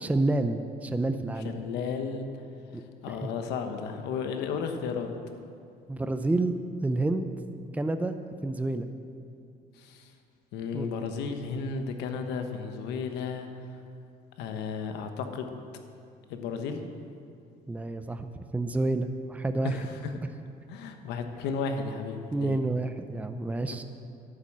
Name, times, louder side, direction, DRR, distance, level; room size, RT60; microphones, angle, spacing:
voice 1, 0.0-1.6 2.7-2.8 3.1-3.3 5.9-6.5 6.8-7.3 7.7-8.2 8.4-8.9 10.7-10.9 17.7-19.8 22.3-23.8, right 2 dB, 10° right, 8 dB, 0.6 m, -29 dB
voice 2, 1.4-2.3 3.0-5.1 9.8-10.1 10.5-13.7 14.4-15.5 16.3-16.8 19.6-20.2 20.7-22.6 23.7-23.8, left 5 dB, 90° left, 6 dB, 1.1 m, -33 dB
10.5 x 9.7 x 7.5 m, 2.4 s
cardioid pair, 110°, 17 cm